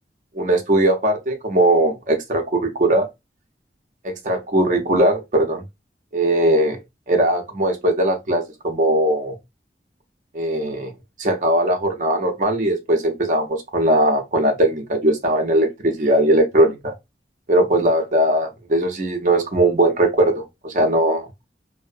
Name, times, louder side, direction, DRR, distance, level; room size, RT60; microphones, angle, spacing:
voice 1, 0.3-3.1 4.0-5.6 6.1-6.8 7.1-9.4 10.3-10.9 11.2-16.9 17.5-21.3, right 1 dB, 45° right, 0.5 m, -19 dB
2.6 x 2.0 x 2.4 m
head